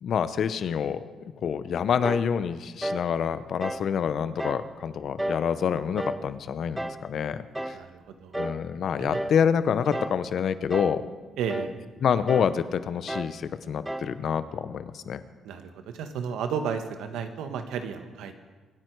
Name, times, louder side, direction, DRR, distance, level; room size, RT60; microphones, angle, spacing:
voice 1, 0.0-1.0 1.4-7.8 8.4-11.0 12.0-15.2, left 7 dB, 60° left, 13 dB, 0.8 m, -27 dB
sound 1, 2.0-2.3 2.8-3.1 3.6-3.9 4.4-4.7 5.2-5.5 6.0-6.3 6.8-7.1 7.5-7.8 8.3-8.6 9.1-9.4 9.9-10.2 10.7-11.0 11.5-11.8 12.3-12.6 13.1-13.4 13.9-14.2, right 1 dB, 10° right, 0.7 m, -33 dB
voice 2, 7.7-8.4 9.0-9.2 9.9-10.0 11.4-11.7 15.4-18.4, right 7 dB, 85° right, 7 dB, 1.3 m, -33 dB
24.0 x 9.7 x 4.7 m, 1.3 s
cardioid pair, 90°, 0 cm